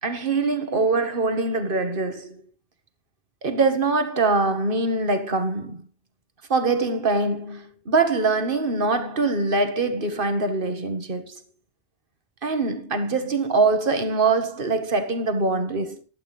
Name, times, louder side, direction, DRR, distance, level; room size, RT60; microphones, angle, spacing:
voice 1, 0.0-2.4 3.4-5.8 6.5-11.4 12.4-16.0, right 3 dB, 55° right, 1.8 m, -23 dB
16.0 x 11.5 x 3.2 m
omnidirectional pair, 1.1 m